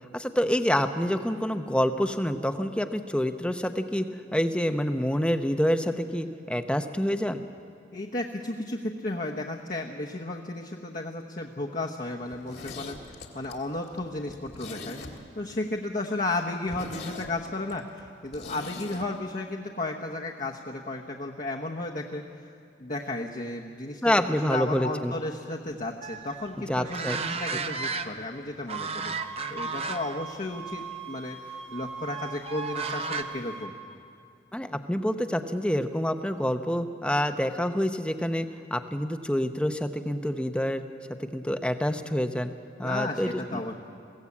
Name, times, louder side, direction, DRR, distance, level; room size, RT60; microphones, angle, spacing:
voice 1, 0.1-4.1 4.3-7.4 24.0-25.1 26.7-27.2 27.5-27.6 34.5-40.8 41.2-42.5 42.8-43.6, equal, 5° left, 8 dB, 0.7 m, -27 dB
voice 2, 7.9-15.0 15.3-22.5 22.8-33.7 42.8-43.7, left 2 dB, 40° left, -1 dB, 1.0 m, -34 dB
Zipper (clothing), 12.3-15.5 15.8-15.9 16.3-16.4 16.7-19.1 19.3-19.4, left 3 dB, 65° left, 2.0 m, -42 dB
sound 1, 26.0-28.4 28.7-30.2 30.6-30.8 32.1-33.2, right 4 dB, 30° right, 0.7 m, -34 dB
sound 2, 29.2-33.7, right 4 dB, 70° right, 1.9 m, -41 dB
22.0 x 16.5 x 8.5 m, 2.4 s
head